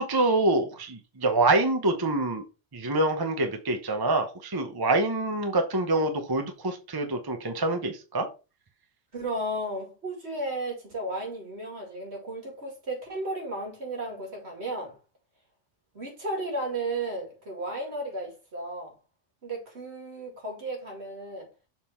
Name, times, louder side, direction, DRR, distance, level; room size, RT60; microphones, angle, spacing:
voice 1, 0.0-2.4 2.7-8.3, right 2 dB, 20° right, 0.8 m, -26 dB
voice 2, 9.1-15.0 15.9-18.9 19.4-21.5, right 1 dB, 65° right, 2.6 m, -34 dB
6.8 x 3.8 x 4.3 m
omnidirectional pair, 1.2 m